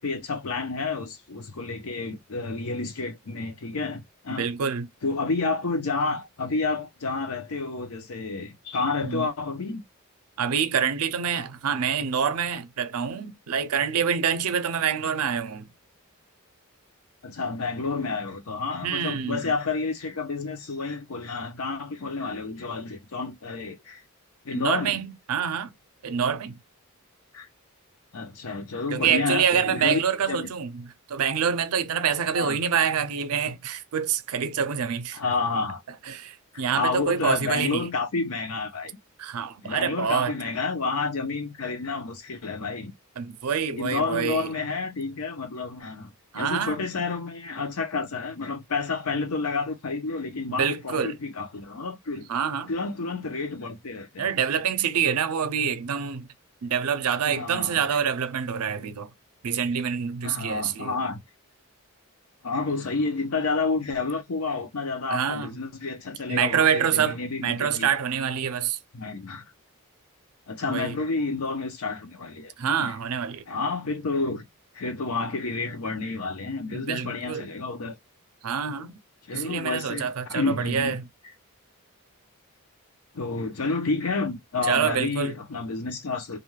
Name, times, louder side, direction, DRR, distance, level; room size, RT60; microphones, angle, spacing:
voice 1, 0.0-4.5 5.0-9.8 17.2-24.0 24.4-25.0 27.3-27.5 28.1-30.0 30.3-30.5 32.3-32.6 35.1-35.8 36.5-39.0 39.6-42.9 43.7-46.1 46.3-52.3 52.7-54.6 57.2-58.0 60.2-61.2 62.4-67.9 68.9-69.4 70.5-72.9 73.5-74.5 74.7-78.0 79.3-81.0 83.1-86.4, left 3 dB, 75° left, 0.7 m, -30 dB
voice 2, 4.4-4.9 9.0-9.3 10.4-15.7 18.8-19.5 24.5-25.7 26.0-26.6 28.9-35.2 36.1-37.8 39.2-40.3 43.2-44.5 46.3-46.8 50.6-51.2 52.3-52.7 54.2-56.3 56.6-59.1 59.4-61.0 65.1-65.5 66.3-68.8 70.7-70.9 72.6-73.4 76.7-77.5 78.4-78.9 79.3-81.0 84.7-85.3, right 7 dB, 80° right, 0.5 m, -26 dB
2.5 x 2.3 x 3.1 m
head